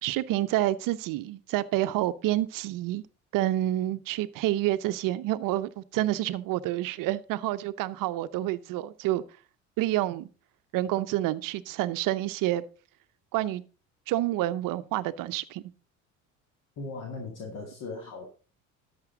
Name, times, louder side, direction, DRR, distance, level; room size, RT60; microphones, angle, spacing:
voice 1, 0.0-3.0 3.3-9.2 9.8-10.3 10.7-12.6 13.3-13.6 14.1-15.6, right 15 dB, 50° right, 0.7 m, -28 dB
voice 2, 16.8-18.3, left 3 dB, 50° left, 2.0 m, -38 dB
11.5 x 6.8 x 3.8 m
hypercardioid pair, 65°, 41 cm